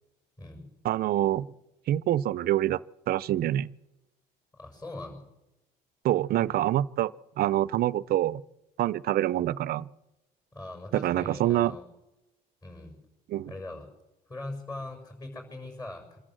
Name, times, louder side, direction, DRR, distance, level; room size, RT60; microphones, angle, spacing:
voice 1, 0.8-1.5 1.9-2.8 3.1-3.7 6.0-7.1 7.4-8.4 8.8-9.9 10.9-11.7 13.3-13.5, right 13 dB, 65° right, 0.6 m, -26 dB
voice 2, 4.5-5.2 10.5-11.8 12.6-13.0 13.5-13.9 14.3-16.2, left 2 dB, 25° left, 6.3 m, -41 dB
25.5 x 13.5 x 7.7 m
cardioid pair, 110°, 17 cm